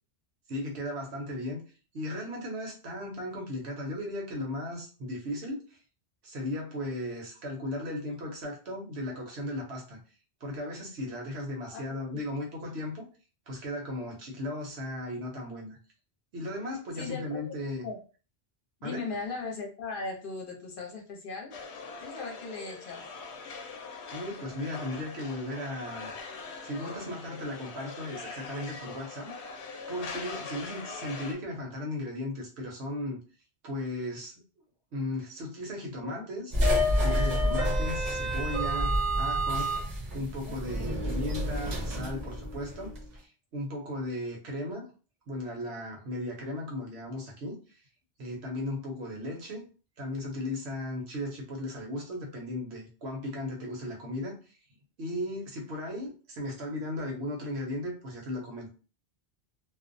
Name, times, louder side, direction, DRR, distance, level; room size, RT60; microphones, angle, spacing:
voice 1, 0.5-1.6 1.9-5.8 6.2-10.0 10.4-13.0 13.5-15.8 16.3-17.9 18.8-19.1 24.1-26.1 26.6-29.3 29.9-33.2 33.6-34.3 34.9-36.5 37.0-39.8 40.1-44.8 45.3-47.8 48.2-49.6 50.0-54.6 55.0-58.7, left 1 dB, 75° right, 0 dB, 1.1 m, -36 dB
voice 2, 16.9-17.5 17.8-18.0 18.8-21.5 22.0-23.0 36.0-36.2 40.4-40.6, left 4 dB, 55° left, 0 dB, 0.8 m, -38 dB
sound 1, 21.5-31.3, left 4 dB, 85° left, 0.9 m, -42 dB
sound 2, 36.5-43.0, equal, 45° right, 0.7 m, -28 dB
2.5 x 2.1 x 2.5 m, 0.35 s
omnidirectional pair, 1.1 m